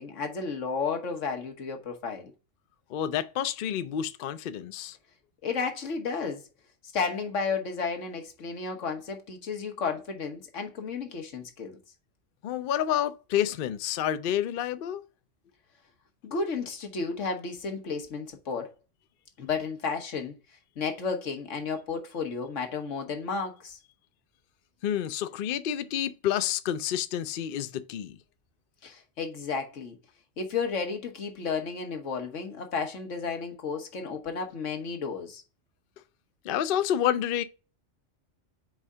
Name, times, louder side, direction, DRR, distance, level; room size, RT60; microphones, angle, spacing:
voice 1, 0.0-2.3 5.4-6.4 6.9-11.8 16.2-18.7 19.4-20.3 20.8-23.8 28.8-30.0 30.4-35.4, left 5 dB, 85° left, 1.5 m, -32 dB
voice 2, 2.9-5.0 12.4-15.0 24.8-28.2 36.4-37.4, left 10 dB, 60° left, 0.6 m, -29 dB
4.9 x 3.6 x 5.4 m
omnidirectional pair, 1.2 m